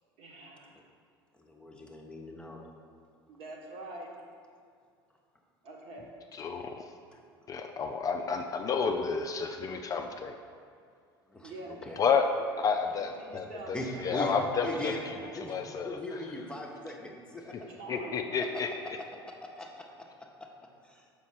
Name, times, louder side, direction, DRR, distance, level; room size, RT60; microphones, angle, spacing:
voice 1, 0.2-0.7 3.3-4.1 5.6-6.1 11.4-11.8 12.4-12.6 13.2-15.7 17.6-18.5, right 2 dB, 50° right, -1 dB, 1.3 m, -45 dB
voice 2, 1.3-2.6 7.1-7.2 11.3-12.0 13.3-13.4 13.7-14.3 14.6-15.0 15.4-15.5 15.8-17.6 18.4-18.9 19.3-20.5 20.8-21.1, left 2 dB, 5° left, 0 dB, 0.8 m, -40 dB
voice 3, 6.3-6.9 7.5-10.4 12.0-12.3 12.6-16.2 17.9-18.7, left 5 dB, 30° left, 5 dB, 0.4 m, -31 dB
6.9 x 5.2 x 4.2 m, 2.3 s
figure-of-eight pair, 70°, 13 cm